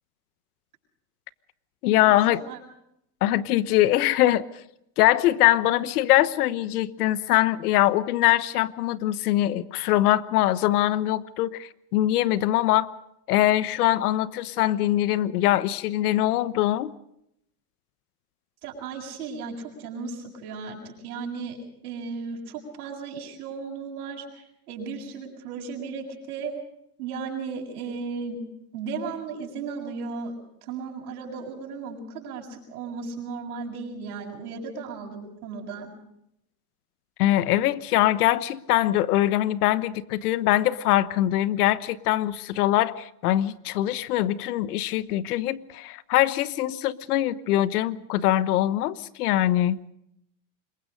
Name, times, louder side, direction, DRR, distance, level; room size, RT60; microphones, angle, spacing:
voice 1, 1.8-2.4 3.2-4.5 5.0-12.9 13.3-16.9 37.2-49.8, left 14 dB, 85° left, 16 dB, 1.2 m, -23 dB
voice 2, 18.6-21.6 21.8-26.5 27.0-28.4 28.7-30.3 30.7-35.9, right 5 dB, 85° right, -2 dB, 6.8 m, -35 dB
26.5 x 22.5 x 5.2 m, 0.77 s
supercardioid pair, 110°, 44 cm